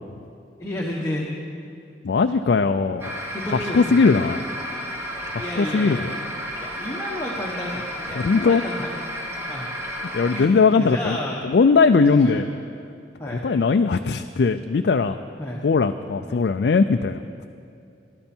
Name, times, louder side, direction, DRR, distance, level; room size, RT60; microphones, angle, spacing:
voice 1, 0.6-1.3 3.3-4.0 5.3-6.1 6.6-8.9 9.4-9.7 10.3-11.4 12.1-12.5 13.2-13.4 15.4-15.6 16.2-16.4, left 1 dB, 15° left, -3 dB, 1.3 m, -31 dB
voice 2, 2.0-3.1 3.7-4.4 5.3-6.1 8.1-8.6 10.1-11.2 11.4-12.4 13.4-15.2 15.6-17.4, left 4 dB, 65° left, 7 dB, 0.4 m, -19 dB
sound 1, 3.0-10.4, equal, 15° right, 1.2 m, -32 dB
19.5 x 12.5 x 4.4 m, 2.5 s
head